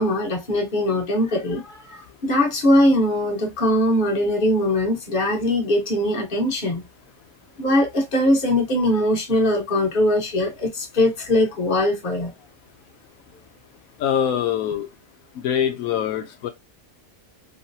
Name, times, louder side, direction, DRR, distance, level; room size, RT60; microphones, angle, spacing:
voice 1, 0.0-6.8 7.6-12.3, left 1 dB, 40° left, 1.2 m, -21 dB
voice 2, 14.0-14.9 15.4-16.5, left 9 dB, 80° left, 1.0 m, -23 dB
3.1 x 2.8 x 2.6 m
omnidirectional pair, 1.4 m